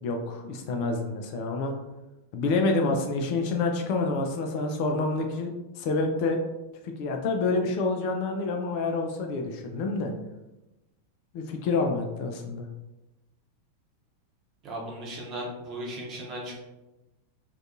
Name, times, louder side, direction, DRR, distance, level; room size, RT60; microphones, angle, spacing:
voice 1, 0.0-1.7 2.3-5.5 5.8-6.4 6.8-10.1 11.3-12.7, left 3 dB, 45° left, 3 dB, 0.3 m, -28 dB
voice 2, 14.6-16.5, right 1 dB, 30° right, -3 dB, 0.8 m, -36 dB
2.5 x 2.2 x 2.6 m, 1.0 s
figure-of-eight pair, 90°, 0 cm